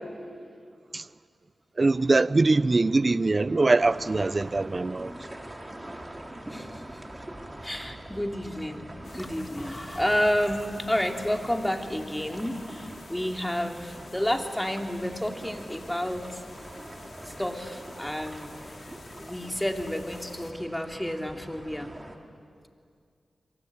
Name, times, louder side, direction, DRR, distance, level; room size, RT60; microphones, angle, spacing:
voice 1, 1.8-5.1, right 3 dB, 45° right, 0.7 m, -22 dB
sound 1, 3.8-22.2, right 1 dB, 25° right, 3.7 m, -44 dB
voice 2, 6.5-6.8 7.6-16.4 17.2-18.5 19.2-21.9, equal, 10° left, 3.0 m, -30 dB
sound 2, 9.0-20.5, left 3 dB, 75° left, 2.8 m, -50 dB
27.5 x 23.5 x 8.7 m
cardioid pair, 40°, 0 cm